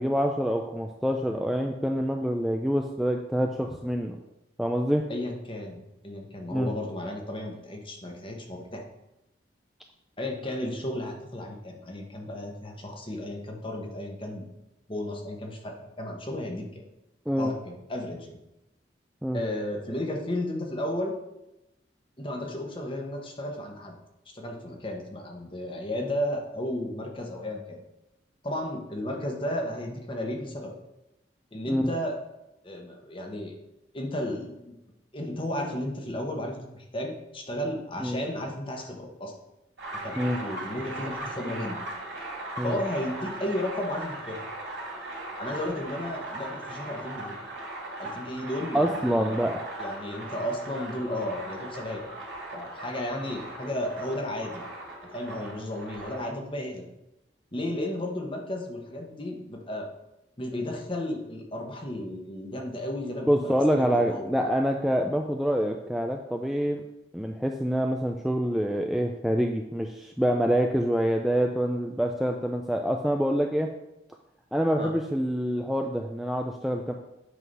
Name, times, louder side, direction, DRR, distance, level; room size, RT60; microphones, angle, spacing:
voice 1, 0.0-4.2 4.6-5.1 6.5-6.7 17.3-17.5 19.2-19.4 31.7-31.8 38.0-38.2 40.2-40.4 42.6-42.8 48.7-49.7 63.3-66.8 67.1-73.7 74.5-76.9, equal, ahead, 2 dB, 0.3 m, -26 dB
voice 2, 5.1-8.8 10.2-14.5 14.9-16.8 17.4-18.4 19.3-21.1 22.2-24.0 24.3-27.8 28.4-30.7 31.5-32.2 32.6-33.5 33.9-34.7 35.1-39.3 40.0-41.8 42.6-44.4 45.4-47.4 48.0-49.4 49.8-52.1 52.5-54.6 55.1-56.8 57.5-59.9 60.4-64.3 74.8-74.9, left 1 dB, 30° left, 1 dB, 1.1 m, -33 dB
sound 1, 39.8-56.3, right 2 dB, 80° right, 2.7 m, -39 dB
8.2 x 3.8 x 5.4 m, 0.92 s
head